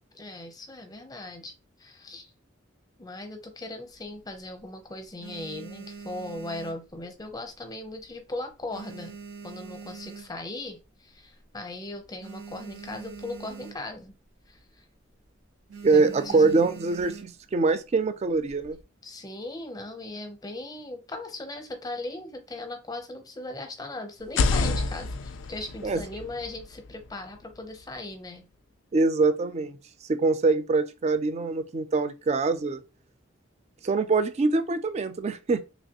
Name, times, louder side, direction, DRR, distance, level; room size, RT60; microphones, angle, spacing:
voice 1, 0.1-1.5 1.8-2.3 3.0-9.2 9.4-14.1 14.5-14.6 15.9-16.6 19.0-28.5, left 2 dB, 20° left, 0.6 m, -38 dB
sound 1, 3.9-4.6 5.0-7.5 7.8-8.2 8.5-10.7 11.2-11.3 11.5-11.6 11.9-14.1 14.4-14.7 15.0-15.2 15.7-17.5 18.2-18.8, right 5 dB, 85° right, 0.8 m, -43 dB
voice 2, 15.8-18.8 25.8-26.0 28.9-29.8 30.1-32.8 33.8-35.6, right 3 dB, 35° right, 0.3 m, -24 dB
sound 2, 24.2-28.0, left 3 dB, 70° left, 0.3 m, -30 dB
3.2 x 2.9 x 2.8 m
head